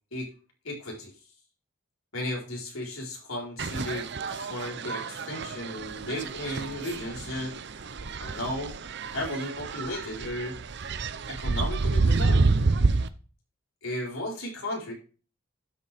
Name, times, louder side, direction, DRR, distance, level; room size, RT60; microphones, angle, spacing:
voice 1, 0.6-1.1 2.1-7.5 8.2-8.8 9.1-10.6 11.3-12.5 13.8-14.9, left 1 dB, 80° left, -1 dB, 4.2 m, -34 dB
sound 1, 3.6-13.1, right 3 dB, 55° right, 0.7 m, -28 dB
12.5 x 6.6 x 3.5 m, 0.37 s
head